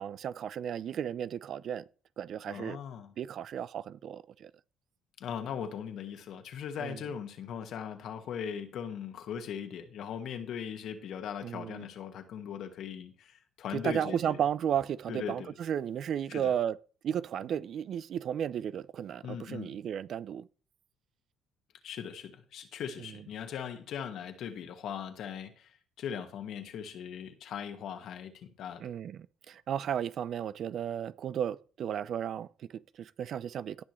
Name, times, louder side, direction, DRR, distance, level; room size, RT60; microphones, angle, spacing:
voice 1, 0.0-1.8 2.2-2.8 3.2-4.5 6.8-7.0 11.4-11.9 13.7-16.8 17.0-20.5 23.0-23.1 28.8-33.8, right 9 dB, 60° right, 0.5 m, -34 dB
voice 2, 2.5-3.1 5.2-14.4 15.1-15.5 16.3-16.5 19.2-19.8 21.8-28.9, left 8 dB, 70° left, 1.7 m, -39 dB
17.5 x 6.1 x 3.2 m
cardioid pair, 90°, 0 cm